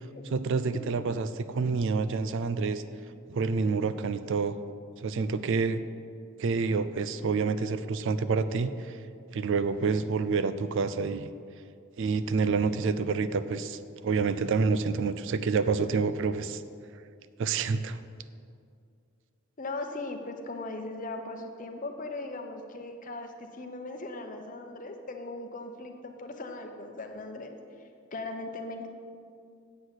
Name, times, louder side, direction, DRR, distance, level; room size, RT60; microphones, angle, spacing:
voice 1, 0.3-2.8 3.3-4.5 5.0-5.8 6.4-9.0 9.3-11.3 12.0-16.6 17.4-18.0, right 4 dB, 60° right, 13 dB, 0.4 m, -28 dB
voice 2, 19.6-27.6 28.1-28.9, left 2 dB, 40° left, 4 dB, 0.8 m, -38 dB
7.9 x 6.2 x 8.0 m, 2.3 s
head